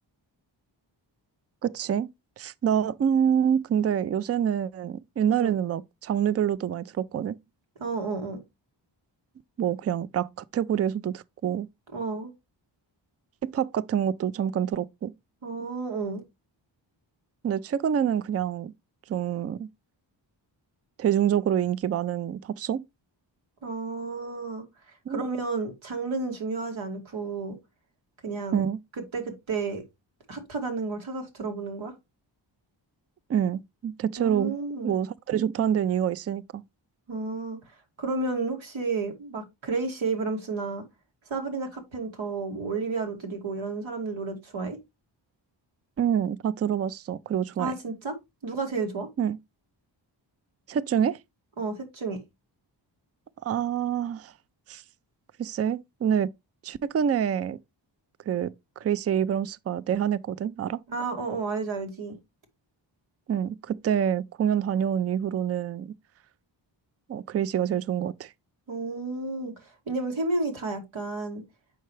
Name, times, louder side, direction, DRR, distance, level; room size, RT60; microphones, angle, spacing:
voice 1, 1.6-2.1 2.4-7.4 9.6-11.7 13.4-15.1 17.4-18.7 19.1-19.7 21.0-22.8 25.1-25.3 28.5-28.8 33.3-34.5 34.8-36.6 46.0-47.7 49.2-49.4 50.7-51.2 53.4-54.3 54.7-54.8 55.4-56.3 56.6-57.6 58.3-58.5 58.8-60.8 63.3-65.9 67.1-68.3, right 9 dB, 35° right, 0.4 m, -26 dB
voice 2, 7.8-8.4 11.9-12.3 15.4-16.2 23.6-24.6 25.1-27.6 28.2-28.6 29.1-29.8 30.3-31.9 34.2-34.9 37.1-37.6 38.0-40.8 41.3-44.8 47.6-48.2 48.4-49.1 51.6-52.2 60.9-62.2 68.7-69.5 69.9-71.4, right 3 dB, 85° right, 2.4 m, -31 dB
7.6 x 5.6 x 3.2 m
wide cardioid pair, 110°, 46 cm